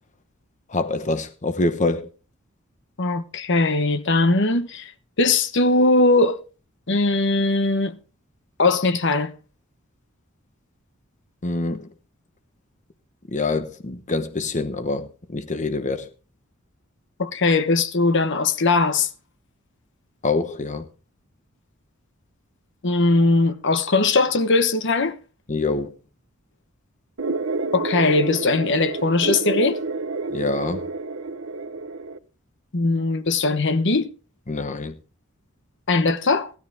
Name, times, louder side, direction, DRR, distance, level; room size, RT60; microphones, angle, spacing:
voice 1, 0.7-2.1 11.4-11.9 13.3-15.1 15.3-16.1 20.2-20.9 25.5-25.9 30.3-30.8 34.5-34.9, left 3 dB, 35° left, 1.0 m, -25 dB
voice 2, 3.0-4.9 5.2-6.4 6.9-7.9 8.6-9.3 17.2-19.1 22.8-25.2 27.7-29.8 32.7-34.1 35.9-36.5, left 3 dB, 60° left, 1.1 m, -20 dB
sound 1, 27.2-32.2, right 3 dB, 80° right, 1.0 m, -29 dB
16.0 x 12.0 x 3.5 m
head